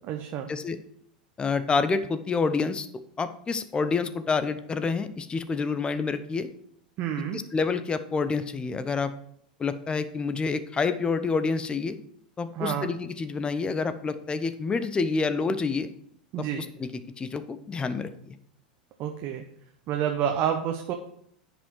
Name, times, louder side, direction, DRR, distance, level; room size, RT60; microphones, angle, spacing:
voice 1, 0.1-0.5 7.0-7.4 12.5-12.9 16.3-16.6 19.0-19.4 19.9-20.9, right 9 dB, 45° right, 4 dB, 0.9 m, -29 dB
voice 2, 1.4-2.9 3.2-6.5 7.2-9.1 9.6-12.0 12.4-15.9 16.4-16.9 17.2-18.4, left 4 dB, 20° left, 12 dB, 0.7 m, -28 dB
9.9 x 5.4 x 4.6 m, 0.67 s
hypercardioid pair, 95°, 5 cm